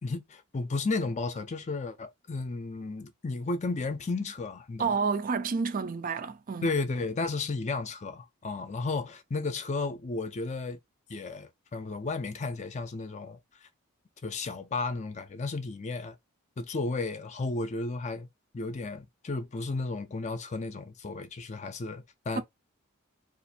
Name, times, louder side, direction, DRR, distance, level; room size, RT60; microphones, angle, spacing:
voice 1, 0.0-4.9 6.6-10.8 11.1-13.7 14.2-16.1 16.6-18.3 18.5-22.4, left 3 dB, 35° left, 0.5 m, -33 dB
voice 2, 4.8-6.7 22.4-22.5, right 5 dB, 40° right, 0.4 m, -29 dB
2.5 x 2.5 x 4.1 m
head